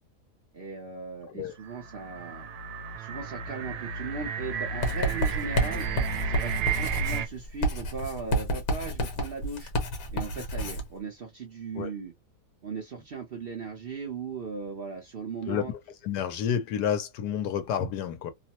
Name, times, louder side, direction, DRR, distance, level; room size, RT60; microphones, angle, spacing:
voice 1, 0.5-2.5 3.0-5.9 6.2-9.7 10.1-12.1 12.6-15.7, right 4 dB, 60° right, 0.6 m, -38 dB
sound 1, 1.6-7.3, right 5 dB, 80° right, 1.1 m, -33 dB
Writing, 4.8-10.9, right 1 dB, 65° left, 1.3 m, -30 dB
voice 2, 16.0-18.3, left 8 dB, 85° left, 1.3 m, -29 dB
3.0 x 2.0 x 2.8 m
omnidirectional pair, 1.7 m